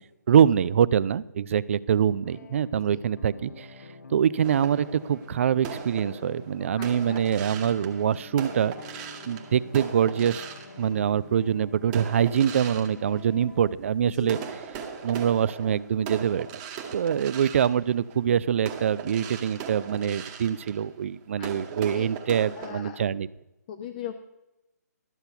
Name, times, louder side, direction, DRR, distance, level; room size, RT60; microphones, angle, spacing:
voice 1, 0.3-3.7 4.1-10.5 10.8-14.4 15.0-16.5 16.9-23.3, right 8 dB, 45° right, 19 dB, 0.4 m, -24 dB
sound 1, 2.0-13.7, left 4 dB, 60° left, 0.9 m, -47 dB
sound 2, 4.4-11.4 11.9-13.9 14.2-22.7, right 7 dB, 25° right, 1.1 m, -40 dB
voice 2, 6.8-7.2 14.1-14.3 21.4-21.5 21.9-22.1 22.6-23.0 23.7-24.2, left 10 dB, 30° left, 8 dB, 0.5 m, -39 dB
12.5 x 6.7 x 5.7 m, 0.96 s
figure-of-eight pair, 140°, 9 cm